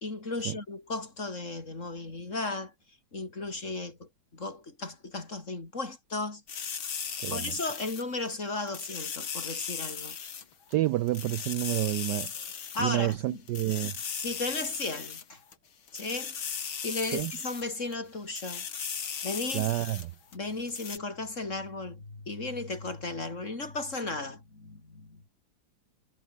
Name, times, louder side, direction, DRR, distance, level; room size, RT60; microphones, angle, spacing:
voice 1, 0.0-2.7 3.1-6.6 7.3-10.2 12.7-13.4 14.2-15.4 15.9-18.7 19.2-19.7 20.3-25.2, left 3 dB, 35° left, 4.0 m, -35 dB
sound 1, 6.5-8.3 8.7-10.4 10.7-10.8 11.1-12.8 13.1-13.2 13.5-15.5 15.9-17.6 17.9-18.0 18.3-20.1 20.3-20.4 20.7-21.0, left 7 dB, 75° left, 2.9 m, -37 dB
voice 2, 7.2-7.6 10.7-14.0 17.1-17.3 19.5-20.1, right 16 dB, 75° right, 1.0 m, -29 dB
omnidirectional pair, 2.2 m